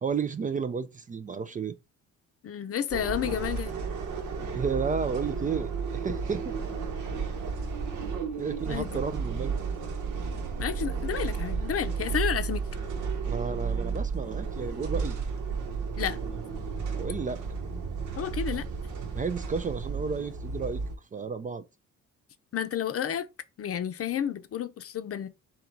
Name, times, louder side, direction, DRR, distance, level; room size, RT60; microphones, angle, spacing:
voice 1, 0.0-1.8 4.5-6.5 8.4-9.5 13.3-15.2 17.0-17.4 19.1-21.6, right 5 dB, 25° right, 0.4 m, -32 dB
voice 2, 2.4-3.8 8.7-9.0 10.6-12.6 16.0-16.2 18.2-18.7 22.5-23.3 23.6-25.3, left 9 dB, 50° left, 0.6 m, -31 dB
sound 1, 2.9-20.9, right 5 dB, 80° right, 1.2 m, -33 dB
3.8 x 3.0 x 4.5 m
cardioid pair, 90°, 30 cm